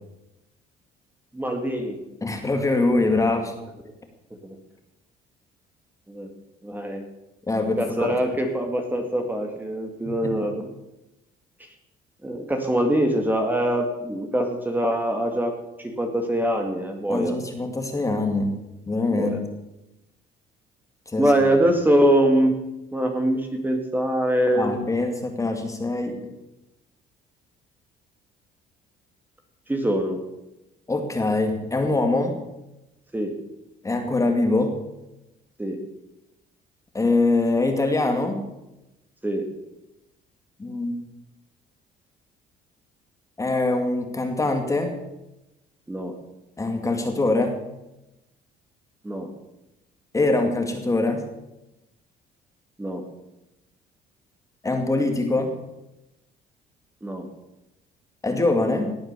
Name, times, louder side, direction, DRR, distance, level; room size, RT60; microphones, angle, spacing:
voice 1, 1.3-2.0 4.4-4.6 6.1-6.3 6.6-7.0 7.8-10.7 12.2-17.4 19.1-19.4 21.2-22.5 22.9-24.7 29.7-30.2 33.1-33.3 35.6-35.8 39.2-39.4 45.9-46.1 49.0-49.3 52.8-53.0 57.0-57.3, right 1 dB, 10° right, 4 dB, 2.2 m, -23 dB
voice 2, 2.2-3.5 7.5-8.1 10.1-10.4 17.1-18.5 18.9-19.4 21.1-21.3 24.6-26.2 30.9-32.4 33.8-34.8 36.9-38.4 40.6-40.9 43.4-44.9 46.6-47.6 50.1-51.2 54.6-55.6 58.2-59.0, left 2 dB, 20° left, 5 dB, 2.3 m, -23 dB
18.0 x 8.9 x 6.9 m, 0.94 s
cardioid pair, 110°, 17 cm